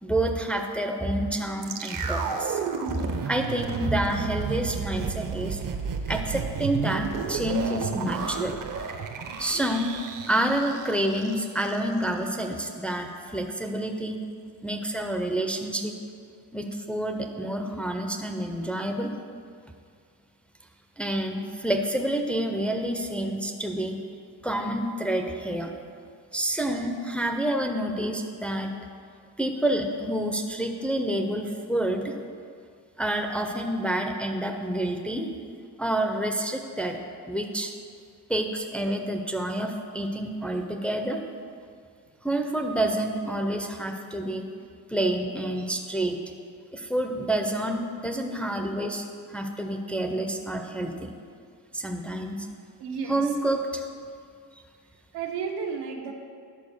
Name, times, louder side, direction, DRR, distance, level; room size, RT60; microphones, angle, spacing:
voice 1, 0.0-2.6 2.9-5.6 6.1-8.6 9.4-10.0 10.3-14.2 14.6-15.9 16.5-19.1 21.0-24.0 24.4-25.7 26.3-28.7 29.4-32.2 33.0-35.3 35.8-37.0 37.3-37.7 38.3-41.2 42.2-44.5 44.9-46.2 46.7-51.1 51.7-52.5 53.1-53.8 54.5-54.6, right 1 dB, 5° left, 3 dB, 0.5 m, -28 dB
sound 1, 1.6-11.8 12.0-12.1, right 6 dB, 55° right, 0.8 m, -32 dB
voice 2, 52.8-53.3 55.1-56.1, right 6 dB, 85° right, 2 dB, 1.2 m, -32 dB
11.0 x 4.6 x 6.4 m, 2.2 s
cardioid pair, 145°, 39 cm